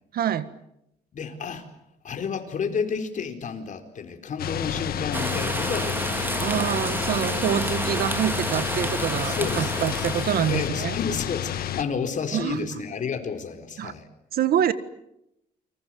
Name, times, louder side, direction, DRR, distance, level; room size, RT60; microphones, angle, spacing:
voice 1, 0.1-0.5 6.4-11.0 12.3-12.7 13.8-13.9 14.3-14.7, right 10 dB, 70° right, 13 dB, 1.7 m, -26 dB
voice 2, 1.1-1.6 2.0-6.4 9.2-10.0 10.5-14.1, left 6 dB, 50° left, 6 dB, 4.5 m, -31 dB
sound 1, 4.4-11.8, left 11 dB, 70° left, 1.7 m, -30 dB
sound 2, 5.1-10.7, right 2 dB, 15° right, 2.3 m, -30 dB
29.5 x 25.0 x 7.8 m, 0.83 s
cardioid pair, 120°, 16 cm